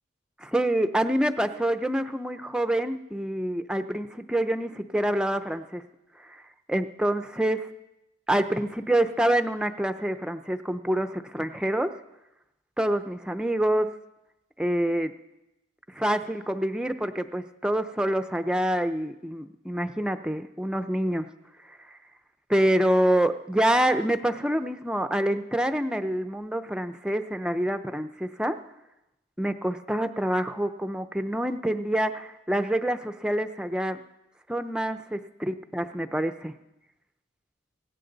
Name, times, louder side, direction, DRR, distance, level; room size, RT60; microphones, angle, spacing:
voice 1, 0.4-5.8 6.3-6.4 6.7-7.7 8.3-11.9 12.8-13.9 14.6-15.1 15.9-21.3 22.5-28.6 29.4-34.0 34.5-36.5, right 1 dB, 5° right, 8 dB, 0.6 m, -26 dB
24.5 x 8.8 x 4.0 m, 0.93 s
head